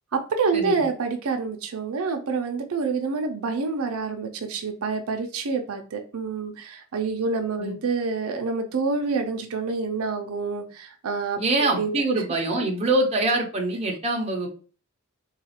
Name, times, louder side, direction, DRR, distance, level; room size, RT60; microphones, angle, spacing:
voice 1, 0.1-11.4 11.7-12.0, right 4 dB, 80° right, 5 dB, 0.5 m, -27 dB
voice 2, 11.4-14.5, right 2 dB, 30° right, 1 dB, 0.7 m, -24 dB
3.9 x 2.4 x 2.8 m, 0.37 s
head